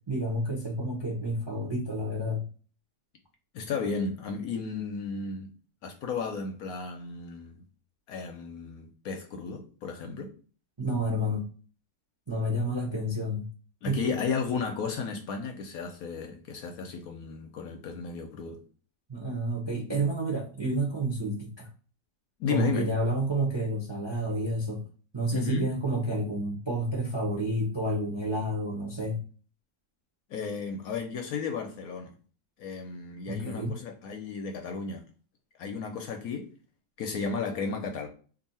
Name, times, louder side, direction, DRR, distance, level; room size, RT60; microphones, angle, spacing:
voice 1, 0.1-2.5 10.8-11.4 12.3-13.5 13.9-14.0 19.1-21.7 22.5-24.8 25.1-29.2 33.3-33.8, right 1 dB, 40° right, 0.3 m, -30 dB
voice 2, 3.5-5.5 5.8-7.6 8.1-10.3 13.8-18.6 22.4-22.9 25.3-25.6 30.3-32.1 32.6-35.0 35.6-36.5 37.0-38.1, left 5 dB, 70° left, 0.9 m, -34 dB
2.7 x 2.7 x 4.0 m
omnidirectional pair, 1.9 m